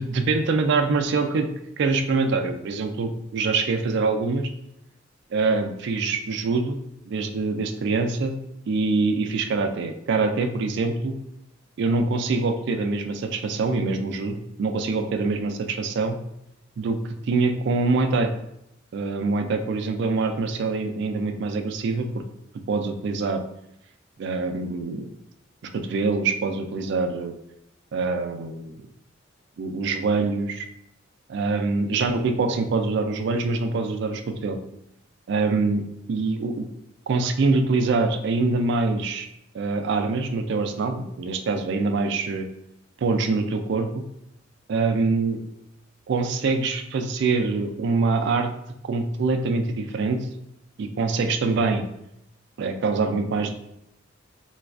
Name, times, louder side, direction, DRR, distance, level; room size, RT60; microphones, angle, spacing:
voice 1, 0.0-1.5 1.8-4.5 5.3-6.8 7.1-8.4 8.7-11.1 11.8-16.2 16.8-17.0 17.3-18.3 18.9-22.2 22.7-23.4 24.2-25.1 25.7-27.3 27.9-28.7 29.6-30.6 31.3-34.6 35.3-36.7 37.1-39.3 39.5-42.4 43.0-44.0 44.7-45.4 46.1-48.5 48.8-50.2 50.8-51.8 52.6-53.5, right 3 dB, 60° right, 6 dB, 0.3 m, -24 dB
4.1 x 2.3 x 2.3 m, 0.80 s
head